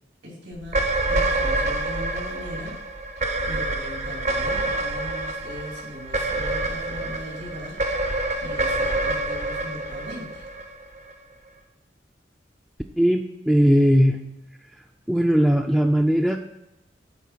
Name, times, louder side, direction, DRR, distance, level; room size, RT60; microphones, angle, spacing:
voice 1, 0.2-2.8 3.1-10.4, equal, 80° right, -3 dB, 2.9 m, -39 dB
sound 1, 0.6-11.1, right 2 dB, 40° right, 0.6 m, -27 dB
voice 2, 13.0-14.2 15.1-16.4, equal, 5° right, 3 dB, 0.3 m, -19 dB
8.2 x 4.3 x 5.9 m, 0.98 s
head